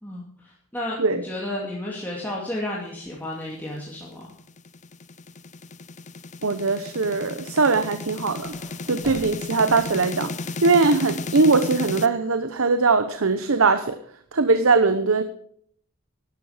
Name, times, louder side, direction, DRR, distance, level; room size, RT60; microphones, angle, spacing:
voice 1, 0.0-4.3, left 1 dB, 10° left, -4 dB, 2.6 m, -32 dB
sound 1, 4.0-12.1, left 3 dB, 35° left, 0.7 m, -34 dB
voice 2, 6.4-8.5 8.9-10.3 10.6-14.0 14.3-15.2, right 4 dB, 70° right, 10 dB, 0.9 m, -21 dB
sound 2, 8.0-10.5, equal, 10° right, 4.7 m, -46 dB
12.5 x 11.5 x 5.0 m, 0.64 s
head